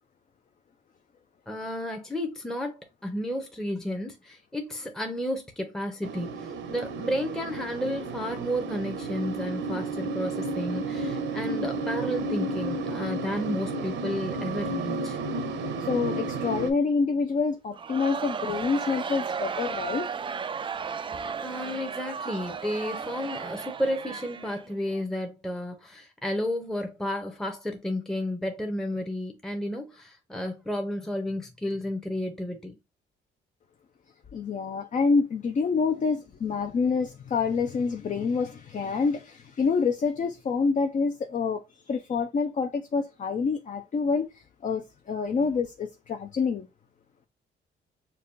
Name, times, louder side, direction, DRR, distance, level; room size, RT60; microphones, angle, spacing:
voice 1, 1.5-15.2 21.4-32.7, left 1 dB, 5° left, 0.7 m, -32 dB
sound 1, 6.0-16.7, right 2 dB, 70° right, 0.8 m, -32 dB
voice 2, 15.8-20.1 34.3-46.7, left 5 dB, 40° left, 0.5 m, -27 dB
Crowd, 17.7-25.0, right 6 dB, 25° right, 0.3 m, -34 dB
5.2 x 2.2 x 2.5 m
cardioid pair, 90°, 20 cm